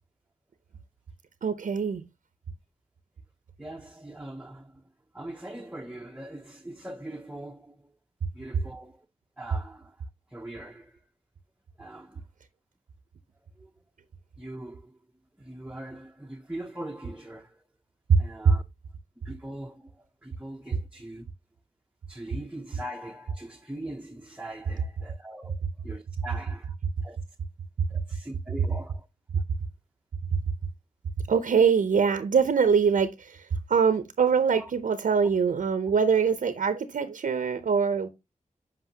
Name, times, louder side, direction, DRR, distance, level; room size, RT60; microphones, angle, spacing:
voice 1, 1.4-2.0 18.1-18.2 18.4-18.5 31.3-38.1, right 6 dB, 75° right, 0.6 m, -23 dB
voice 2, 3.6-4.8 5.1-7.9 8.3-9.1 9.4-10.0 10.3-11.0 11.8-12.2 13.6-13.7 14.4-15.0 15.4-17.6 18.2-18.6 19.2-21.3 22.1-25.6 25.8-26.8 27.0-27.2 27.9-29.1 34.5-34.7, right 1 dB, 10° right, 0.6 m, -41 dB
8.0 x 5.3 x 2.8 m
wide cardioid pair, 95°, 14 cm